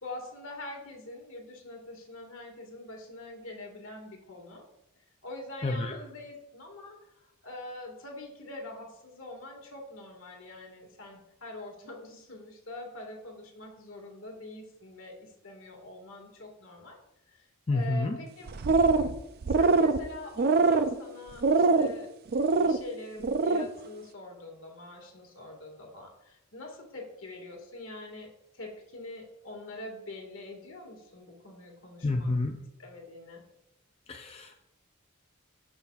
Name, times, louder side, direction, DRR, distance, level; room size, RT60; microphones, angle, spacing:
voice 1, 0.0-4.6 5.2-17.0 17.3-17.4 17.7-18.5 19.5-22.1 22.6-28.3 28.5-32.3 32.8-33.4, left 2 dB, 65° left, 0 dB, 1.9 m, -44 dB
voice 2, 5.6-6.0 17.7-18.2 32.0-32.6 34.1-34.5, left 2 dB, 25° left, 3 dB, 0.4 m, -29 dB
sound 1, 18.5-19.1 19.4-20.0 20.4-20.9 21.4-21.9 22.3-22.8 23.2-23.6, right 4 dB, 45° right, 0.4 m, -23 dB
12.5 x 5.8 x 2.4 m, 0.86 s
head